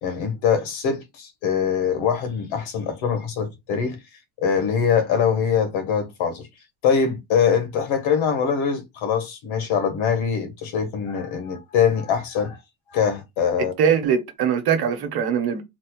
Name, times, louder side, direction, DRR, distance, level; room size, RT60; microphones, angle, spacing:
voice 1, 0.0-4.0 4.4-6.4 6.8-12.6 12.9-13.7, left 7 dB, 85° left, 1.0 m, -23 dB
voice 2, 13.8-15.6, right 7 dB, 55° right, 0.9 m, -21 dB
4.0 x 2.0 x 2.9 m
cardioid pair, 175°, 46 cm